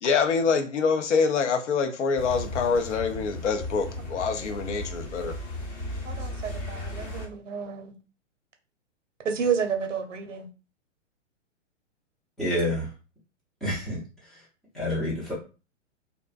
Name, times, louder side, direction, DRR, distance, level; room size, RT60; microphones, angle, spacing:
voice 1, 0.0-5.3, left 5 dB, 70° left, 0.6 m, -25 dB
sound 1, 2.2-7.3, left 1 dB, 35° left, 0.9 m, -36 dB
voice 2, 6.0-7.9 9.2-10.5, right 6 dB, 80° right, 0.7 m, -30 dB
voice 3, 12.4-12.9 13.6-14.0 14.7-15.3, left 1 dB, ahead, 0.3 m, -28 dB
2.5 x 2.1 x 2.3 m
figure-of-eight pair, 115°, 37 cm